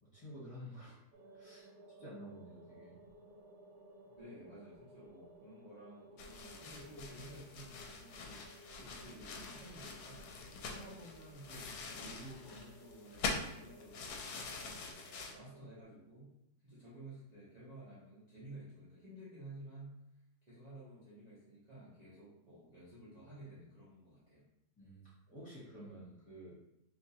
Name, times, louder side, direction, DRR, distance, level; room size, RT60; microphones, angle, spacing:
voice 1, 0.0-1.0 1.3-1.7 2.0-3.0 24.8-26.6, equal, 20° left, -9 dB, 1.5 m, -51 dB
sound 1, 1.1-15.8, right 1 dB, 80° right, 1.2 m, -58 dB
voice 2, 4.2-10.3 10.7-14.4 14.7-15.0 15.3-16.3 16.6-20.0 20.4-24.5, right 1 dB, 30° right, -11 dB, 0.9 m, -53 dB
sound 2, 6.2-15.3, left 4 dB, 75° left, 1.1 m, -45 dB
3.4 x 2.9 x 2.8 m, 0.82 s
omnidirectional pair, 1.7 m